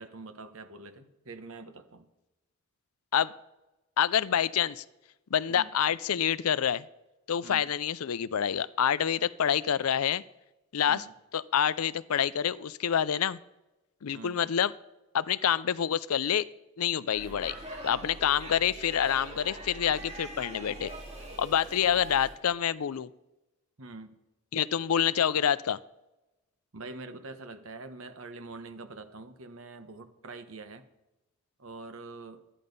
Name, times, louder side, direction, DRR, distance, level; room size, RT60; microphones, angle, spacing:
voice 1, 0.0-2.1 5.5-5.7 7.4-7.7 10.9-11.1 14.1-14.4 23.8-24.2 26.7-30.8 31.6-32.4, right 3 dB, 65° right, 9 dB, 1.1 m, -45 dB
voice 2, 4.0-4.8 5.3-6.9 7.3-10.2 10.7-11.0 11.3-13.4 14.0-14.7 15.1-16.5 16.8-17.5 17.8-20.9 21.4-23.1 24.5-25.8, left 9 dB, 85° left, 18 dB, 0.5 m, -27 dB
Speech / Shout / Subway metro underground, 17.1-22.4, right 1 dB, 30° right, 2.3 m, -43 dB
12.5 x 9.9 x 5.4 m, 1.0 s
head